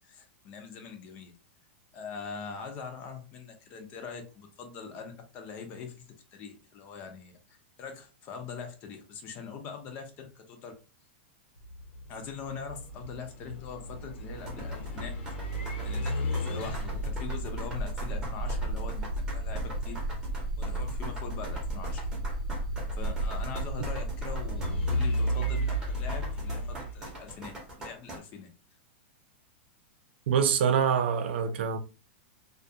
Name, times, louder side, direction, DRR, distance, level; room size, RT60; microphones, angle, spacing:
voice 1, 0.0-1.3 1.9-6.0 6.3-10.7 12.1-15.1 15.8-20.0 20.6-22.1 22.9-27.5 27.8-28.5, left 6 dB, 25° left, 0.4 m, -42 dB
sound 1, 11.6-27.6, right 1 dB, 75° left, 0.9 m, -33 dB
sound 2, 14.4-28.2, right 1 dB, 10° right, 0.7 m, -43 dB
voice 2, 30.3-31.8, right 7 dB, 65° right, 0.4 m, -25 dB
2.2 x 2.2 x 2.6 m
supercardioid pair, 170°, 6 cm